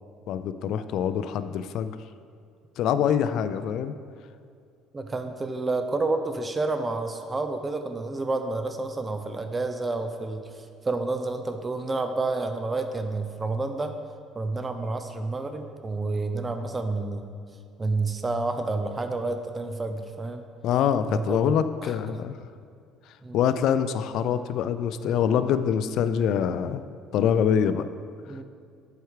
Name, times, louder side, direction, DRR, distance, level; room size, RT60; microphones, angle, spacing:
voice 1, 0.3-2.0 2.8-3.9 20.6-22.3 23.3-26.8 27.1-27.8, left 8 dB, 65° left, 11 dB, 0.3 m, -25 dB
voice 2, 4.9-14.0 14.3-17.3 17.8-20.4 21.1-21.5 21.8-22.2 23.2-23.4 28.3-28.4, right 3 dB, 20° right, 7 dB, 0.5 m, -29 dB
7.9 x 4.7 x 4.7 m, 2.3 s
cardioid pair, 125°, 0 cm